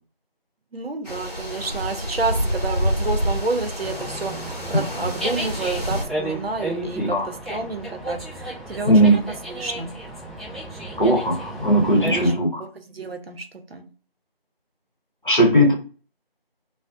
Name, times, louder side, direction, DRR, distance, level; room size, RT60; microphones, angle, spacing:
voice 1, 0.7-4.3 4.7-9.2 9.6-9.9 12.1-12.3 12.8-13.4 13.7-13.8, right 3 dB, 75° right, 5 dB, 0.6 m, -29 dB
sound 1, 1.1-6.0, equal, 40° right, 0.7 m, -27 dB
Dog, 3.8-12.3, right 1 dB, ahead, 0.5 m, -33 dB
voice 2, 7.0-7.3 8.9-9.2 11.0-12.6 15.2-15.7, right 1 dB, 55° left, 0 dB, 0.8 m, -18 dB
2.6 x 2.0 x 3.5 m, 0.39 s
figure-of-eight pair, 180°, 30 cm